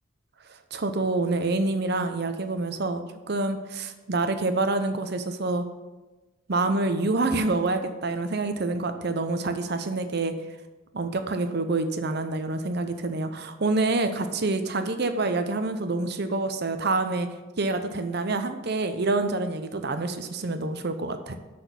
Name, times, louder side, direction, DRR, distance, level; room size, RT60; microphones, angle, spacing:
voice 1, 0.7-5.7 6.5-10.3 10.9-17.3 17.6-21.4, right 3 dB, 50° right, 9 dB, 0.7 m, -27 dB
6.2 x 6.1 x 6.9 m, 1.2 s
head